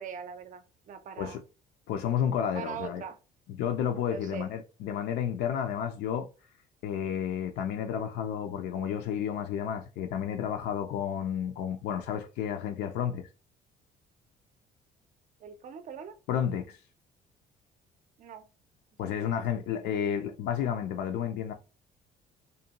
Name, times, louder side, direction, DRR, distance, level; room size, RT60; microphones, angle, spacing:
voice 1, 0.0-1.4 2.5-3.2 4.1-4.5 15.4-16.1 18.2-18.5 19.2-19.3, right 7 dB, 50° right, 0.5 m, -41 dB
voice 2, 1.9-3.0 3.5-6.3 6.8-13.3 16.3-16.8 19.0-21.5, left 9 dB, 80° left, 0.4 m, -31 dB
2.6 x 2.1 x 2.8 m
cardioid pair, 110°, 17 cm